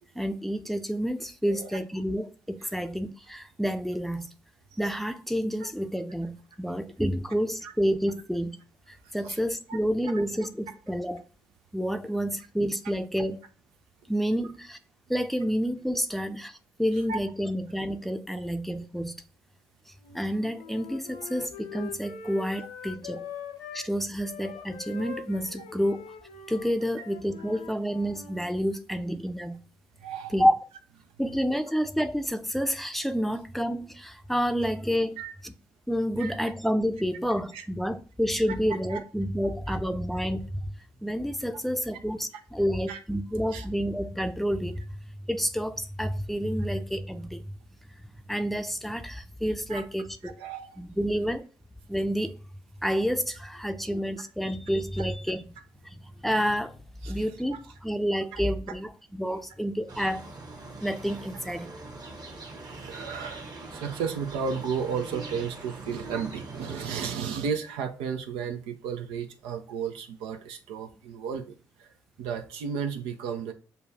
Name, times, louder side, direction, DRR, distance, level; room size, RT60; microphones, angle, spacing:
voice 1, 0.2-4.3 4.8-8.6 9.1-11.2 11.7-13.4 14.1-14.8 15.1-19.2 20.1-23.2 23.7-26.1 26.5-29.6 30.3-30.5 31.2-35.2 35.4-35.5 35.9-40.6 41.0-44.8 45.3-47.4 48.3-50.3 50.8-51.4 51.9-52.4 52.8-55.4 56.2-56.8 57.0-60.2 60.8-61.7, equal, ahead, 0.6 m, -29 dB
voice 2, 1.5-1.8 2.6-2.7 4.7-4.8 7.6-7.7 9.0-9.4 9.7-9.8 10.1-10.2 17.1-17.2 30.0-30.4 35.2-35.3 36.2-36.4 37.5-37.7 38.9-39.0 39.4-39.8 42.6-43.0 43.5-43.7 49.7-49.8 50.2-50.8 53.8-53.9 55.0-55.1 57.0-57.3 58.3-58.4 62.8-73.5, right 6 dB, 75° right, 0.5 m, -34 dB
Wind instrument woodwind instrument, 20.0-23.9 24.2-28.5, left 6 dB, 80° left, 0.6 m, -43 dB
sound 1, 59.9-67.1, right 3 dB, 45° right, 1.1 m, -42 dB
6.7 x 2.3 x 2.7 m
hypercardioid pair, 45°, 9 cm